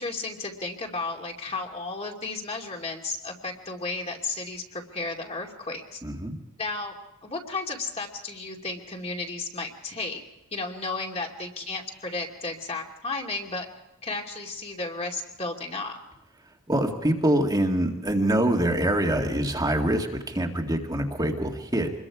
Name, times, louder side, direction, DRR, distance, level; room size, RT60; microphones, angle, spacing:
voice 1, 0.0-6.0 6.6-6.9 7.2-10.2 10.5-13.7 14.0-16.0, left 3 dB, 30° left, 1 dB, 2.7 m, -33 dB
voice 2, 6.0-6.4 16.7-21.9, right 1 dB, 20° right, 2 dB, 2.0 m, -25 dB
26.5 x 22.0 x 4.9 m, 0.93 s
head